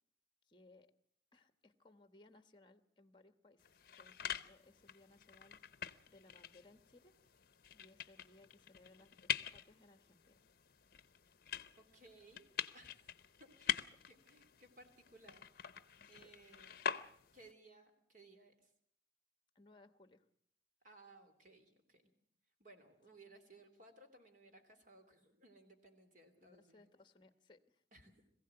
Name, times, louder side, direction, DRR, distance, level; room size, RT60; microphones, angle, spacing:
voice 1, 0.5-0.9 1.3-5.6 6.1-7.1 7.7-10.4 16.0-16.3 19.5-20.2 26.4-27.8, left 2 dB, 25° left, 10 dB, 1.2 m, -65 dB
sound 1, 3.6-17.5, left 9 dB, 55° left, 0.7 m, -45 dB
voice 2, 11.8-12.5 12.7-13.0 13.4-15.4 16.1-16.8 17.3-18.7 20.8-22.0 22.6-26.9 27.9-28.2, right 2 dB, 45° right, 6 dB, 3.0 m, -62 dB
22.0 x 15.5 x 7.8 m, 0.67 s
head